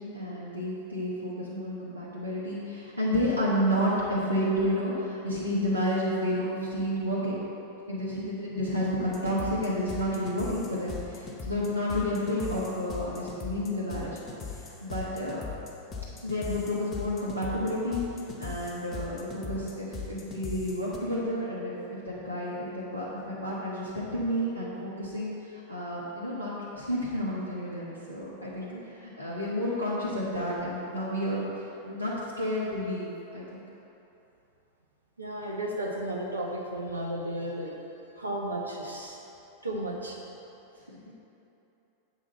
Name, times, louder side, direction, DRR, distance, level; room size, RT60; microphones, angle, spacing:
voice 1, 0.0-7.4 7.9-14.2 14.5-15.4 16.2-18.0 18.4-33.6 40.9-41.1, equal, 85° left, -8 dB, 1.1 m, -31 dB
sound 1, 9.1-21.0, left 5 dB, 25° left, 1.0 m, -40 dB
voice 2, 35.2-37.7 38.2-39.2 39.6-40.2, right 1 dB, 80° right, -1 dB, 0.8 m, -34 dB
8.1 x 6.2 x 4.4 m, 2.9 s
figure-of-eight pair, 90°, 0 cm